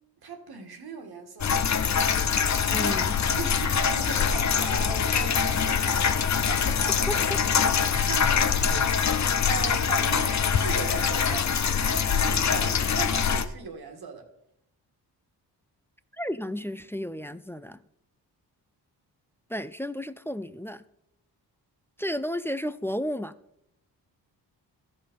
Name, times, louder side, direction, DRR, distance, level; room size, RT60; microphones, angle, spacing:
voice 1, 0.2-1.8 2.3-9.2 9.5-14.3, right 5 dB, 65° right, 1.7 m, -39 dB
sound 1, 1.4-13.5, left 6 dB, 40° left, 0.7 m, -24 dB
voice 2, 2.7-3.2 7.1-7.4 16.2-17.8 19.5-20.8 22.0-23.3, equal, 5° left, 0.4 m, -32 dB
13.5 x 5.4 x 5.3 m
cardioid pair, 60°, 41 cm